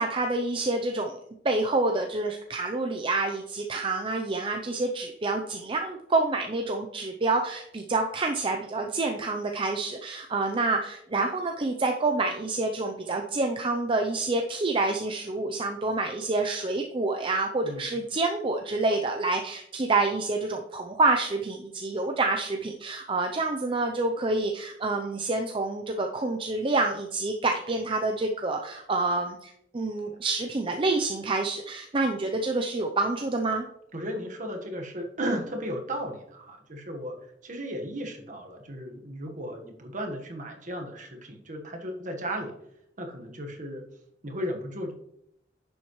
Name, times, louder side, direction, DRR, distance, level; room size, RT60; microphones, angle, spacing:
voice 1, 0.0-33.6, right 3 dB, 30° right, 3 dB, 0.6 m, -28 dB
voice 2, 33.9-37.1 37.4-42.5 43.0-43.8 44.2-44.9, equal, 45° right, 3 dB, 1.4 m, -35 dB
10.5 x 7.1 x 3.1 m, 0.75 s
head